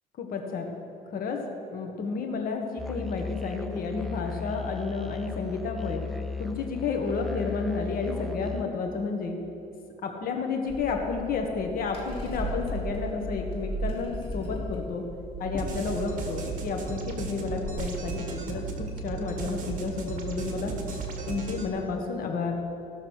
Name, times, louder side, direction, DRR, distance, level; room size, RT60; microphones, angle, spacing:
voice 1, 0.2-0.7 1.1-1.4 1.7-6.0 6.4-9.4 10.0-15.0 15.4-20.7 21.3-22.6, left 4 dB, 60° left, 3 dB, 1.5 m, -31 dB
Musical instrument, 2.8-8.6, left 4 dB, ahead, 0.6 m, -36 dB
sound 1, 10.7-21.0, right 1 dB, 35° left, 2.5 m, -37 dB
sound 2, 15.3-21.7, right 5 dB, 50° right, 1.8 m, -35 dB
16.0 x 6.5 x 6.3 m, 2.9 s
cardioid pair, 110°, 17 cm